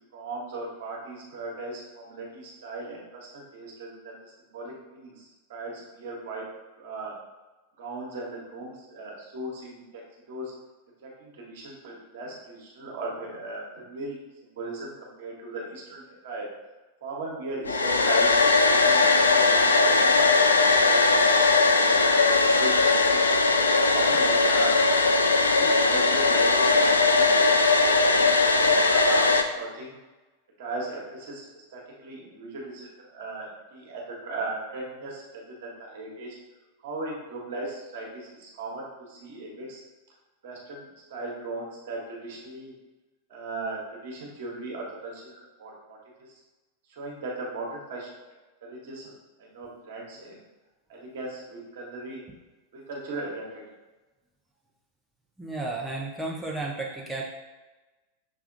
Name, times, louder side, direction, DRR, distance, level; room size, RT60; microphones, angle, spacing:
voice 1, 0.1-6.4 6.8-7.1 7.8-10.0 10.3-10.5 11.0-14.2 14.4-16.5 17.0-23.3 23.7-24.7 25.5-27.7 28.0-29.3 29.6-30.0 30.6-36.4 36.8-39.8 40.4-42.7 43.3-46.3 46.9-48.1 48.6-49.1 49.4-50.4 50.9-52.3 52.7-53.6, right 2 dB, 55° right, -2 dB, 1.3 m, -37 dB
Domestic sounds home sounds, 17.6-29.4, left 3 dB, 75° left, 0.3 m, -20 dB
voice 2, 55.4-57.2, right 2 dB, ahead, -4 dB, 0.6 m, -33 dB
6.3 x 3.4 x 2.5 m, 1.2 s
figure-of-eight pair, 90°, 0 cm